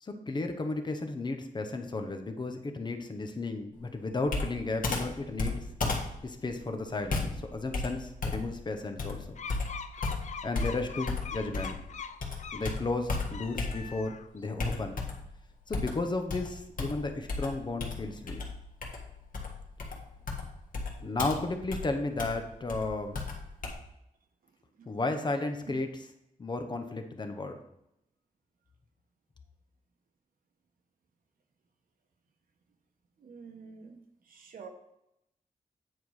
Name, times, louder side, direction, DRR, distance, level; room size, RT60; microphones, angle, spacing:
voice 1, 0.0-5.6 6.2-9.4 10.4-11.8 12.5-15.0 15.7-18.4 21.0-23.2 24.9-26.1 26.4-27.6, left 3 dB, 30° left, 6 dB, 0.9 m, -34 dB
Computer keyboard, 4.3-11.9 12.2-14.1 14.6-15.3 15.7-23.7, left 3 dB, 75° left, 1.7 m, -35 dB
sound 1, 9.4-12.8 13.2-14.4, left 6 dB, 55° left, 0.5 m, -42 dB
voice 2, 33.2-34.0 34.3-34.7, right 5 dB, 85° right, 4 dB, 1.3 m, -47 dB
9.3 x 4.5 x 4.8 m, 0.81 s
wide cardioid pair, 160°, 14 cm